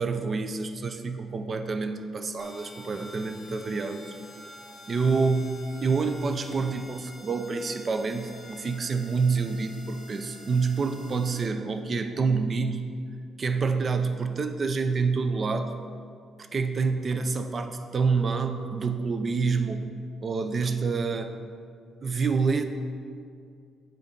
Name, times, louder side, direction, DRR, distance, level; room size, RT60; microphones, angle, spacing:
voice 1, 0.0-4.0 4.9-12.9 13.4-15.8 16.5-19.8 20.2-21.3 22.0-22.6, right 4 dB, 35° right, 8 dB, 0.4 m, -27 dB
sound 1, 2.4-11.5, left 2 dB, 20° left, 0.8 m, -48 dB
7.6 x 3.8 x 5.2 m, 2.2 s
cardioid pair, 135°, 0 cm